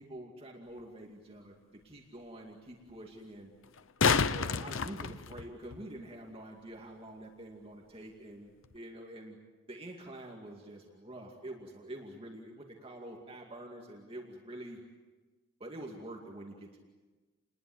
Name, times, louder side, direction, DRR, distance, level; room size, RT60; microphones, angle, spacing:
voice 1, 0.0-1.6 1.8-3.5 4.3-9.4 9.7-14.8 15.6-16.8, right 1 dB, 30° right, 0 dB, 2.3 m, -46 dB
sound 1, 0.8-0.9 3.6-5.8 8.6-8.7, left 5 dB, 85° left, 0.8 m, -29 dB
29.5 x 21.0 x 8.0 m, 1.3 s
head